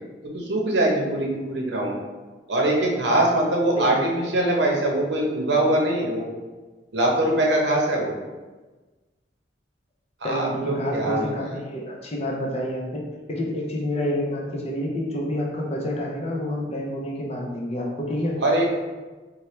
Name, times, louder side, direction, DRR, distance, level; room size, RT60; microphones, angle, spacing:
voice 1, 0.3-2.0 2.5-6.2 6.9-8.1 10.2-11.3 18.4-18.6, right 1 dB, 75° right, -1 dB, 0.8 m, -22 dB
voice 2, 3.7-4.1 10.2-18.4, left 1 dB, 35° left, -1 dB, 0.6 m, -28 dB
4.3 x 2.2 x 3.1 m, 1.3 s
head